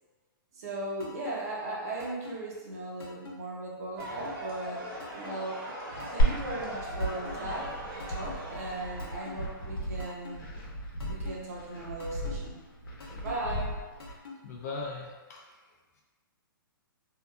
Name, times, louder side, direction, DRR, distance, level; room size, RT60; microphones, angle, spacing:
voice 1, 0.5-5.6 6.1-10.5 11.1-12.6 13.1-13.8, right 2 dB, 40° right, -3 dB, 0.6 m, -37 dB
sound 1, 1.0-1.3 2.0-2.4 3.0-3.3 4.0-4.4 5.0-5.4 6.0-6.4 7.0-7.3 8.0-8.4 9.0-9.3 10.0-10.4 11.0-11.4 12.0-12.4 13.0-13.3 14.0-14.4, left 5 dB, 85° left, 0.7 m, -44 dB
sound 2, 4.0-9.8, equal, 85° right, 1.1 m, -41 dB
Glass, 6.2-14.2, right 1 dB, 65° left, 0.9 m, -33 dB
voice 2, 14.4-16.0, left 3 dB, 45° left, -1 dB, 0.5 m, -40 dB
2.7 x 2.4 x 2.3 m, 1.3 s
hypercardioid pair, 165°, 12 cm